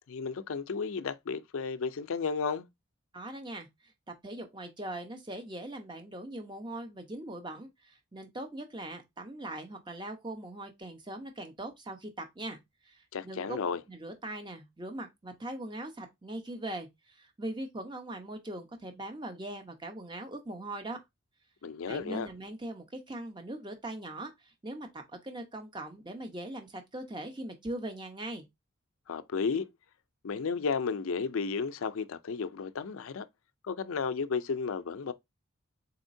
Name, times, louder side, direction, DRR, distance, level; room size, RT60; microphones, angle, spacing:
voice 1, 0.1-2.7 13.1-13.8 21.6-22.3 29.1-29.7 30.2-33.2 33.6-35.1, left 5 dB, 75° left, 0.4 m, -33 dB
voice 2, 3.1-3.9 4.2-13.6 13.9-21.0 21.9-28.4, right 1 dB, 20° right, 0.9 m, -41 dB
4.3 x 4.1 x 2.6 m
head